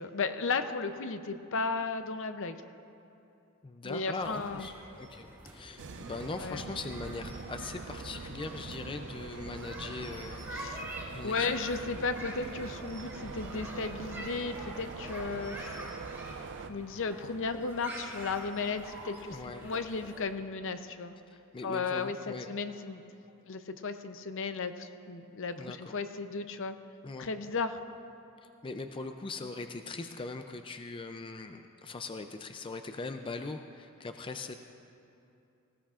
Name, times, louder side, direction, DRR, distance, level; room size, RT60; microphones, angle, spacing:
voice 1, 0.0-2.6 3.8-4.7 6.4-6.6 10.5-10.9 11.2-15.8 16.7-21.2 21.6-23.0 23.5-26.7 27.2-27.8, left 4 dB, 60° left, 9 dB, 0.7 m, -35 dB
voice 2, 3.6-4.7 5.0-10.5 11.1-11.5 19.3-19.7 21.3-22.5 25.6-25.9 27.0-27.3 28.6-34.5, left 3 dB, 25° left, 6 dB, 0.4 m, -40 dB
sound 1, 4.2-20.2, right 1 dB, 10° right, 2.4 m, -46 dB
sound 2, 5.8-16.7, right 4 dB, 55° right, 0.5 m, -43 dB
18.5 x 17.5 x 2.5 m, 2.7 s
head